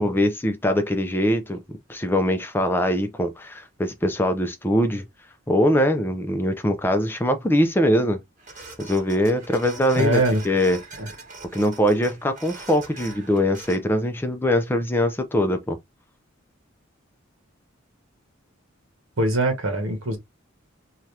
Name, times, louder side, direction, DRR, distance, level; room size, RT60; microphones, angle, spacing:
voice 1, 0.0-1.6 1.9-5.1 5.5-8.2 8.8-10.8 11.5-15.8, equal, 10° left, 0.5 m, -22 dB
sound 1, 8.4-13.8, right 3 dB, 40° right, 1.2 m, -42 dB
voice 2, 9.9-10.4 11.0-11.1 19.2-20.2, right 2 dB, 70° right, 1.1 m, -22 dB
2.8 x 2.4 x 3.3 m
head